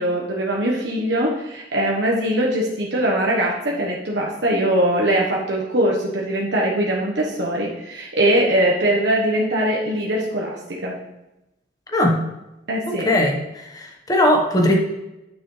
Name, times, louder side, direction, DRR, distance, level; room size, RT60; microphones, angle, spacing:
voice 1, 0.0-11.0 12.7-13.1, right 1 dB, 75° right, -3 dB, 1.3 m, -21 dB
voice 2, 13.0-14.8, left 1 dB, 20° left, 1 dB, 1.3 m, -19 dB
9.6 x 6.1 x 3.3 m, 0.93 s
head